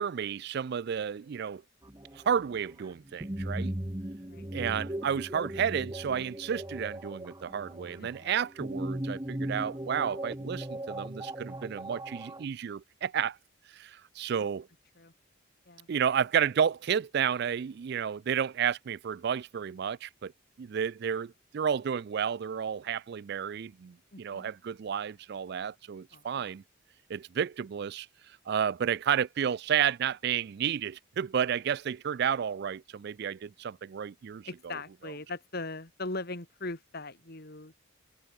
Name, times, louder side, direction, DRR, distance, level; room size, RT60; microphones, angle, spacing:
voice 1, 0.0-1.6 2.2-3.7 4.5-13.4 13.7-14.7 15.9-20.3 20.6-26.6 27.1-28.1 28.5-34.5, right 8 dB, 50° right, 0.3 m, -31 dB
sound 1, 1.8-12.4, right 1 dB, 15° right, 1.2 m, -38 dB
voice 2, 24.1-24.5 26.1-26.3 34.5-37.7, left 2 dB, 50° left, 2.2 m, -39 dB
head